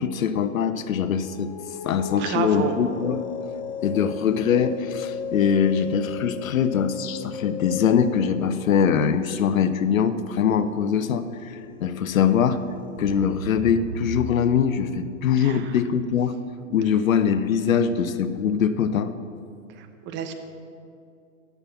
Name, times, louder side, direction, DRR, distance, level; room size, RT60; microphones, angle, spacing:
voice 1, 0.0-1.5 1.8-3.2 3.8-12.6 13.0-16.3 16.7-19.1, left 7 dB, 85° left, 12 dB, 0.8 m, -22 dB
sound 1, 1.1-13.9, left 7 dB, 15° left, 0.4 m, -37 dB
voice 2, 2.2-2.8 15.4-15.8 19.7-20.3, right 8 dB, 30° right, 7 dB, 0.9 m, -30 dB
sound 2, 11.6-11.8 12.1-12.6 12.9-14.9 15.3-15.7 16.2-16.3, right 2 dB, 70° right, 2.7 m, -37 dB
10.5 x 7.3 x 7.0 m, 2.4 s
hypercardioid pair, 125°, 40 cm